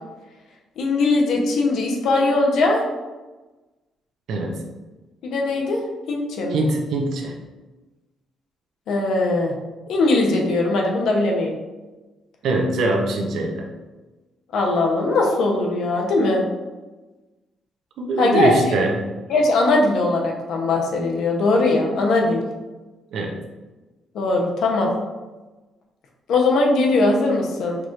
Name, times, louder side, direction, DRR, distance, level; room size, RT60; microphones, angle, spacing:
voice 1, 0.8-2.8 5.2-5.8 6.1-6.6 8.9-9.5 9.9-11.6 14.5-16.4 18.2-18.8 19.3-22.4 24.1-24.9 26.3-27.8, left 2 dB, 75° left, 0 dB, 0.8 m, -20 dB
voice 2, 4.3-4.6 6.5-7.3 12.4-13.7 18.0-19.0 23.1-23.3, right 2 dB, 75° right, 1 dB, 0.7 m, -22 dB
4.7 x 3.0 x 2.5 m, 1.2 s
cardioid pair, 90°, 0 cm